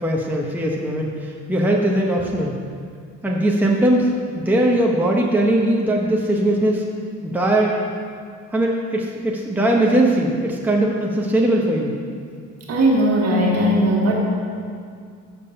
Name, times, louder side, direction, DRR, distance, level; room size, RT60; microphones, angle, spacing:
voice 1, 0.0-2.6 3.2-4.1 4.3-6.8 7.2-7.8 8.5-12.0, right 1 dB, 5° right, -1 dB, 0.9 m, -20 dB
voice 2, 12.7-14.1, right 1 dB, 55° right, -2 dB, 1.4 m, -18 dB
6.9 x 6.7 x 5.6 m, 2.2 s
cardioid pair, 90°, 30 cm